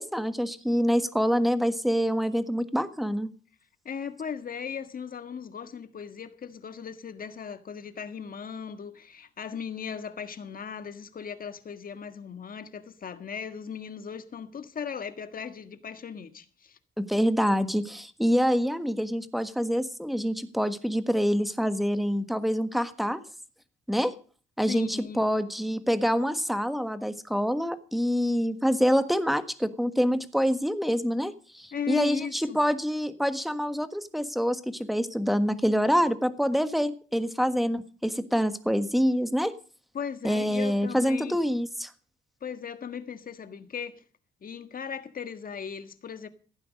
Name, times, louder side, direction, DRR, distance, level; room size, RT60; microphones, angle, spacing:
voice 1, 0.0-3.3 17.0-23.2 23.9-24.2 24.6-39.5 40.2-41.9, equal, ahead, 1.5 m, -26 dB
voice 2, 3.8-16.8 24.7-25.3 31.7-32.6 39.9-41.4 42.4-44.0 44.4-46.3, left 7 dB, 45° left, 1.6 m, -37 dB
16.0 x 9.1 x 6.5 m
cardioid pair, 90°, 20 cm